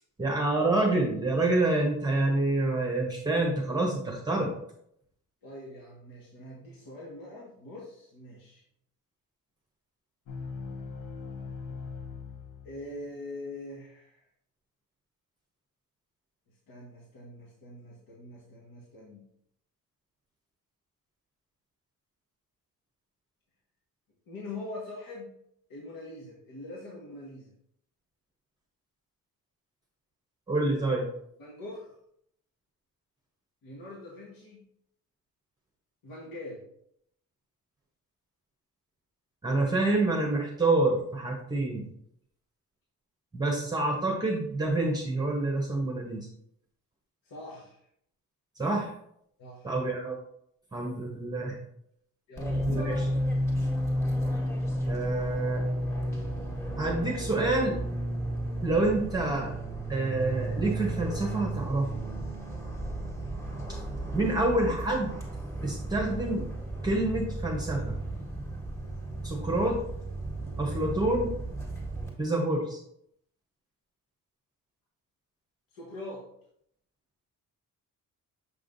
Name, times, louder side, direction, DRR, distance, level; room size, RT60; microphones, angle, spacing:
voice 1, 0.2-4.5 30.5-31.0 39.4-41.9 43.3-46.3 48.6-48.9 49.6-50.2 50.7-51.6 52.7-53.0 54.9-55.6 56.8-57.8 58.6-59.5 59.9-61.9 64.1-65.1 65.6-66.5 66.8-68.0 69.2-69.8 70.6-71.3 72.2-72.8, right 2 dB, 10° right, 0 dB, 0.9 m, -27 dB
voice 2, 5.4-8.6 12.6-14.2 16.7-19.2 24.3-25.3 25.7-27.5 31.4-31.9 33.6-34.6 36.0-36.6 47.2-47.9 49.4-49.7 52.3-52.9 63.9-64.3 75.7-76.3, left 1 dB, 80° left, -3 dB, 1.4 m, -43 dB
sound 1, 10.3-13.1, left 5 dB, 65° left, 0.9 m, -40 dB
Fixed-wing aircraft airplane, 52.4-72.1, right 1 dB, 10° left, 1.7 m, -33 dB
6.6 x 5.6 x 2.6 m, 0.73 s
cardioid pair, 135°, 34 cm